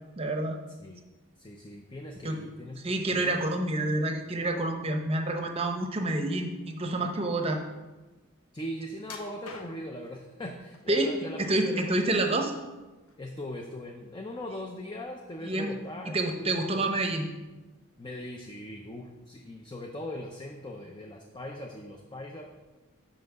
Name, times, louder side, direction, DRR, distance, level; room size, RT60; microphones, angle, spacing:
voice 1, 0.2-0.6 2.2-2.4 2.8-7.6 10.9-11.1 11.4-12.5 15.4-15.7 16.1-17.3, right 2 dB, 25° right, 4 dB, 0.7 m, -28 dB
voice 2, 1.4-3.5 8.5-12.4 13.2-16.9 18.0-22.4, left 1 dB, 20° left, 1 dB, 0.5 m, -40 dB
sound 1, 9.0-10.1 10.7-11.4 11.8-12.7 13.1-13.3 13.8-13.9, left 3 dB, 75° left, 0.9 m, -46 dB
5.8 x 5.2 x 6.6 m, 1.2 s
head